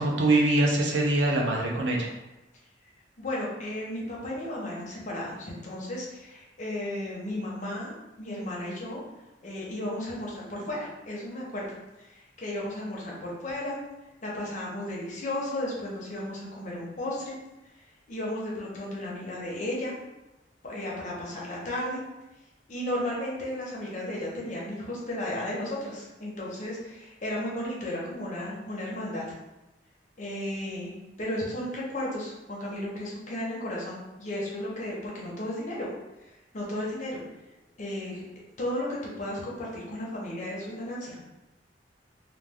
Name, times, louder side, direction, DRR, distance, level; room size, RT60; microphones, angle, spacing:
voice 1, 0.0-2.1, right 2 dB, 80° right, -1 dB, 0.6 m, -23 dB
voice 2, 3.2-7.9 8.2-9.0 9.4-11.7 12.0-13.8 14.2-17.3 18.1-19.9 20.6-22.0 22.7-29.2 30.2-35.9 36.5-37.2 37.8-38.2 38.6-41.2, left 1 dB, 45° left, -4 dB, 0.8 m, -34 dB
2.3 x 2.2 x 3.4 m, 1.0 s
head